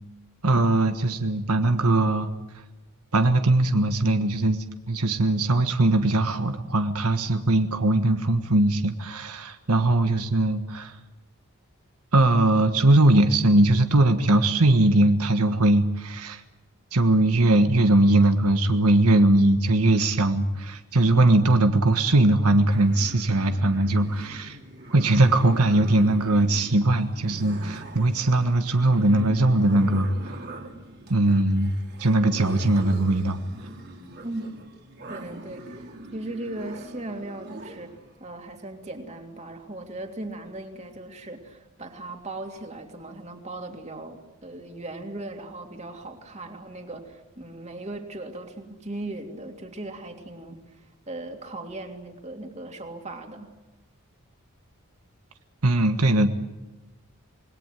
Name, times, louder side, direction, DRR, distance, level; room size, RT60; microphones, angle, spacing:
voice 1, 0.4-2.3 3.1-10.9 12.1-16.4 16.9-24.6 24.9-30.3 31.1-31.7 32.0-33.4 55.6-56.3, right 2 dB, 85° right, 7 dB, 1.5 m, -20 dB
sound 1, 22.7-38.1, right 1 dB, 45° right, 3.6 m, -42 dB
voice 2, 35.1-37.9 38.2-53.5, right 2 dB, 30° right, 4 dB, 3.0 m, -38 dB
26.5 x 20.5 x 9.2 m, 1.0 s
head